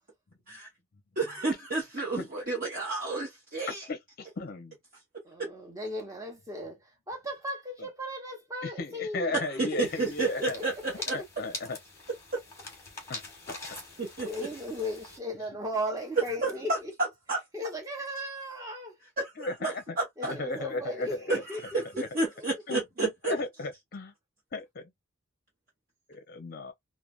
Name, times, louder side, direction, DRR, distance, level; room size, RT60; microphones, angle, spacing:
voice 1, 1.2-3.8 5.4-5.5 9.6-11.2 12.3-12.4 14.0-14.3 16.4-16.8 17.3-17.4 19.2-19.3 19.6-20.3 21.7-23.3, right 3 dB, 40° right, 0.9 m, -31 dB
voice 2, 3.9-4.8 8.8-10.6 11.1-11.8 13.1-13.2 13.5-13.8 19.4-20.0 20.2-21.3 22.0-22.1 22.7-22.8 23.2-24.1 24.5-24.9 26.1-26.7, left 3 dB, 45° left, 0.5 m, -35 dB
voice 3, 5.2-9.4 10.2-10.3 10.5-10.6 11.2-11.3 13.9-16.9 17.5-19.0 20.2-22.0 22.4-22.5, equal, 15° right, 0.9 m, -37 dB
sound 1, 9.8-15.2, left 2 dB, 15° left, 1.1 m, -43 dB
3.2 x 2.1 x 2.3 m
head